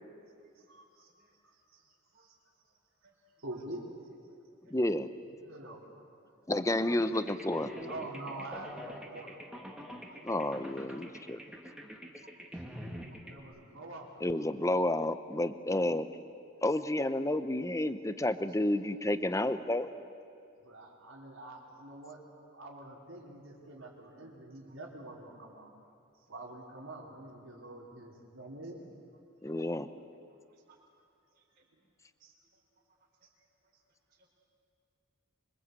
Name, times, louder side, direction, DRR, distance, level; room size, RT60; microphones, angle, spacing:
voice 1, 0.7-1.1 1.4-2.4 3.4-3.9 5.4-5.8 7.8-9.4 13.2-14.3 20.6-22.3 22.5-25.7 26.3-28.8 31.7-31.8 32.2-32.4 33.2-33.3, right 2 dB, 90° right, -1 dB, 4.5 m, -46 dB
voice 2, 4.7-5.1 6.5-7.7 10.2-11.4 14.2-16.1 16.6-20.0 29.4-29.9, left 1 dB, 15° left, 11 dB, 0.9 m, -30 dB
sound 1, 7.0-13.4, equal, 5° right, 2.0 m, -45 dB
voice 3, 12.2-12.8 13.1-13.2 24.6-24.7 30.5-30.8, right 4 dB, 45° right, -2 dB, 4.4 m, -63 dB
25.5 x 24.0 x 8.4 m, 2.4 s
head